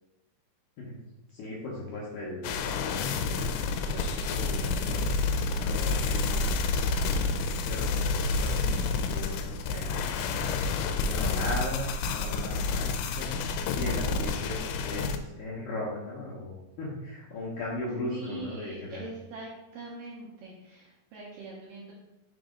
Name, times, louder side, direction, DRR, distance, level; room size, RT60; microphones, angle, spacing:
voice 1, 1.3-3.4 3.7-5.0 5.5-7.2 7.7-13.3 13.7-19.0, left 2 dB, 70° left, -5 dB, 2.0 m, -38 dB
sound 1, 2.4-15.2, left 3 dB, 90° left, 2.9 m, -29 dB
voice 2, 18.1-21.9, right 3 dB, 75° right, -4 dB, 2.1 m, -42 dB
6.4 x 4.1 x 5.0 m, 0.98 s
omnidirectional pair, 5.0 m